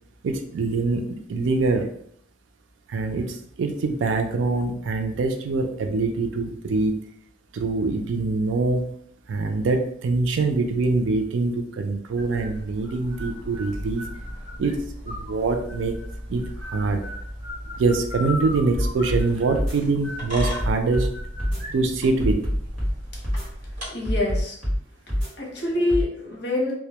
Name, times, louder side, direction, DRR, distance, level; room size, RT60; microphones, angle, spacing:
voice 1, 0.2-1.0 1.3-1.9 2.9-7.0 7.5-8.9 9.3-14.1 14.6-14.8 15.0-16.0 16.3-17.0 17.8-21.1 21.7-22.4, right 3 dB, 85° right, 5 dB, 0.4 m, -24 dB
sound 1, 12.2-23.9, equal, 45° right, 1.1 m, -36 dB
sound 2, 18.7-19.2 19.5-19.8 20.4-21.1 21.4-21.6 22.2-22.9 23.2-23.5 24.0-24.8 25.1-25.3 25.9-26.1, equal, 5° left, 1.1 m, -24 dB
voice 2, 23.9-24.5 25.4-26.7, left 2 dB, 65° left, -3 dB, 0.8 m, -25 dB
2.2 x 2.0 x 2.8 m, 0.66 s
head